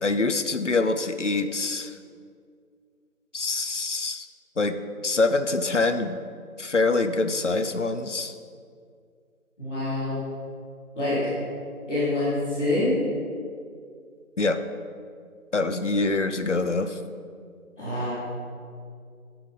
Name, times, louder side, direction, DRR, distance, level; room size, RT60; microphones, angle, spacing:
voice 1, 0.0-2.0 3.3-4.3 4.6-4.8 5.0-6.2 6.6-8.3 14.4-14.6 15.5-17.0, left 3 dB, 55° left, 9 dB, 0.6 m, -25 dB
voice 2, 9.6-10.2 10.9-11.2 11.9-12.9 17.8-18.2, left 2 dB, 5° left, -22 dB, 2.0 m, -26 dB
11.0 x 5.9 x 5.5 m, 2.2 s
figure-of-eight pair, 175°, 44 cm